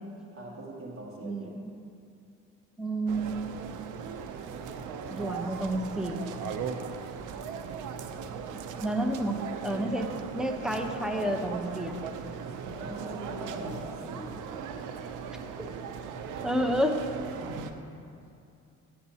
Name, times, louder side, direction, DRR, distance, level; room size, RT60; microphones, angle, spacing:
voice 1, 0.3-1.6 12.6-14.3 17.4-17.7, right 1 dB, 45° right, -3 dB, 1.9 m, -41 dB
voice 2, 1.2-1.7 2.8-3.4 5.1-6.2 8.8-12.0 16.4-17.0, right 1 dB, ahead, 3 dB, 0.8 m, -30 dB
sound 1, 3.1-17.7, right 6 dB, 85° right, 0.6 m, -38 dB
10.0 x 10.0 x 2.8 m, 2.5 s
cardioid pair, 90°, 30 cm